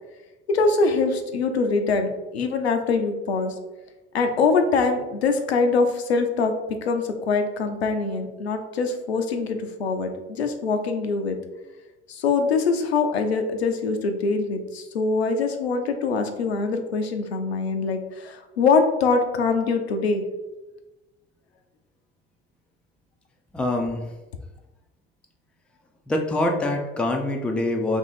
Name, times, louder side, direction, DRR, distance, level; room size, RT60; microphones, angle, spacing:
voice 1, 0.5-3.5 4.1-6.5 6.8-11.4 12.1-20.2, left 4 dB, 80° left, 6 dB, 0.5 m, -23 dB
voice 2, 23.5-24.0 26.1-28.0, left 1 dB, 5° left, 3 dB, 0.3 m, -24 dB
2.9 x 2.6 x 4.0 m, 1.1 s
figure-of-eight pair, 60°, 31 cm